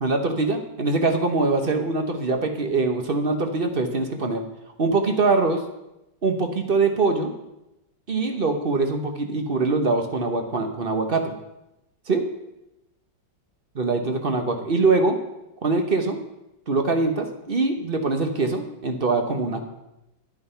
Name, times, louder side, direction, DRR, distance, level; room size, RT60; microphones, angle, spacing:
voice 1, 0.0-4.4 4.8-5.6 6.2-7.3 8.1-11.4 12.1-12.3 13.7-15.2 15.6-16.2 16.7-19.6, right 3 dB, 40° right, 5 dB, 1.0 m, -23 dB
11.5 x 8.9 x 5.6 m, 0.92 s
omnidirectional pair, 2.0 m